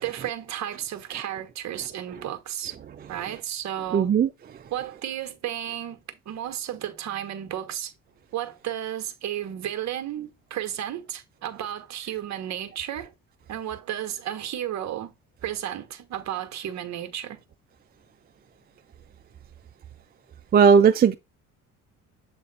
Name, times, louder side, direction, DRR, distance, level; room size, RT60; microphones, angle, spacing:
voice 1, 0.0-2.8 3.1-4.1 4.7-7.9 8.3-13.1 13.5-15.1 15.4-17.4, right 11 dB, 55° right, 1.4 m, -33 dB
voice 2, 3.9-4.3 20.5-21.1, right 6 dB, 30° right, 0.5 m, -16 dB
7.7 x 3.2 x 4.1 m
cardioid pair, 110°, 33 cm